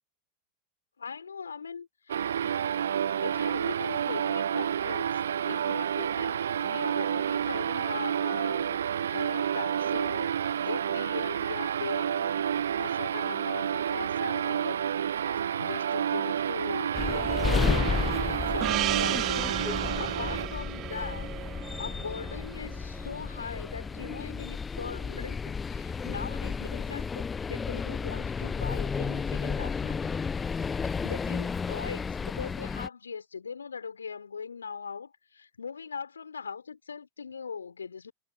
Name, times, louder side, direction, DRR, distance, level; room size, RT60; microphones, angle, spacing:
voice 1, 1.0-2.6 3.2-8.9 9.1-10.4 10.7-12.5 12.8-18.0 18.3-21.3 21.8-30.2 31.0-38.1, left 6 dB, 75° left, 4.5 m, -40 dB
sound 1, 2.1-20.5, right 9 dB, 65° right, 1.0 m, -29 dB
sound 2, 16.9-32.9, left 5 dB, 15° left, 1.3 m, -32 dB
Gong, 18.6-23.4, right 16 dB, 35° right, 1.3 m, -34 dB
figure-of-eight pair, 90°, 0 cm